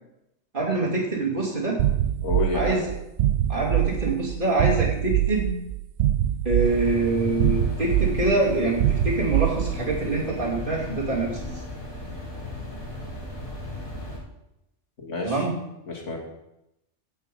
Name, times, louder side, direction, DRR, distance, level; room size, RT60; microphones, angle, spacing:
voice 1, 0.5-1.8 2.5-2.8 3.5-5.5 6.4-11.5 15.2-15.5, right 2 dB, 40° right, -3 dB, 2.8 m, -25 dB
sound 1, 1.8-10.1, right 12 dB, 75° right, 0.9 m, -24 dB
voice 2, 2.2-2.8 15.0-15.5 15.9-16.2, left 3 dB, 70° left, 0 dB, 2.3 m, -29 dB
sound 2, 6.6-14.2, left 1 dB, 20° left, 3.3 m, -36 dB
16.0 x 5.8 x 5.3 m, 0.87 s
omnidirectional pair, 1.3 m